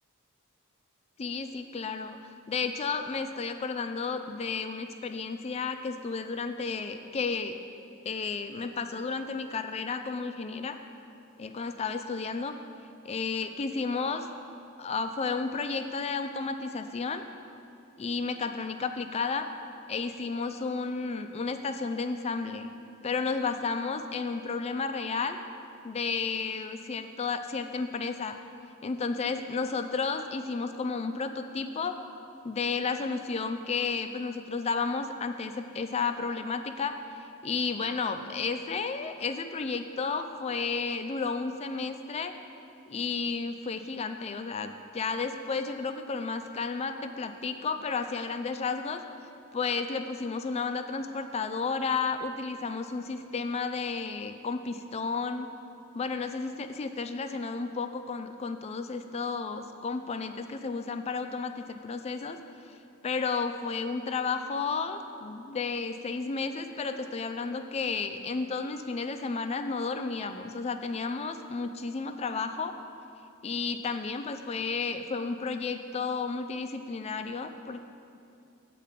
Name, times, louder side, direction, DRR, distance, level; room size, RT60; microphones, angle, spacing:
voice 1, 1.2-2.2 2.5-7.6 8.1-10.8 11.4-12.5 13.0-14.3 14.8-17.2 18.0-19.5 19.9-22.7 23.0-25.4 25.8-28.4 28.8-32.0 32.4-42.3 42.9-49.0 49.5-55.5 55.9-62.4 63.0-72.7 73.4-77.8, left 4 dB, 30° left, 8 dB, 0.4 m, -32 dB
8.4 x 4.6 x 7.3 m, 2.6 s
head